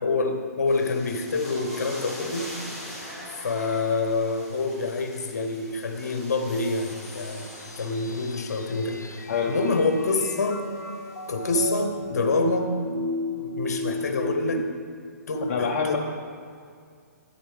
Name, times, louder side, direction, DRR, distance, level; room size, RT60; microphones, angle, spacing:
voice 1, 0.0-2.6 3.4-7.5 7.8-10.6 11.3-12.7 13.4-14.7 15.3-16.0, left 3 dB, 65° left, 5 dB, 1.2 m, -26 dB
sound 1, 0.7-11.8, equal, ahead, 2.1 m, -43 dB
sound 2, 6.5-14.6, left 1 dB, 85° left, 0.9 m, -35 dB
voice 2, 15.5-16.0, left 6 dB, 40° left, 2 dB, 0.7 m, -25 dB
10.0 x 8.7 x 3.5 m, 2.2 s
figure-of-eight pair, 135°, 9 cm